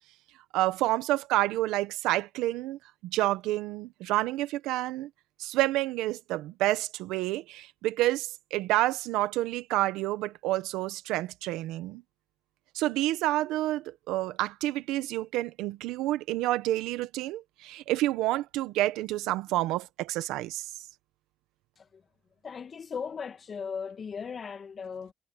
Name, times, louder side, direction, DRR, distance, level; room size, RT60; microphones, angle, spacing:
voice 1, 0.5-5.1 5.4-12.0 12.7-20.7, right 16 dB, 85° right, 1.3 m, -29 dB
voice 2, 22.4-25.1, left 6 dB, 55° left, 2.0 m, -37 dB
hypercardioid pair, 45°, 0 cm